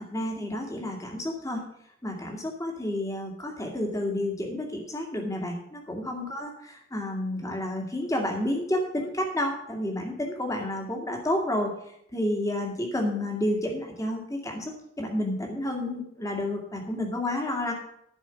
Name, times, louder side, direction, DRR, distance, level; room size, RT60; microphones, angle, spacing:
voice 1, 0.0-1.6 2.0-6.5 6.9-11.7 12.1-14.7 15.0-17.7, left 1 dB, 15° left, 1 dB, 2.1 m, -30 dB
11.0 x 4.9 x 8.2 m, 0.72 s
head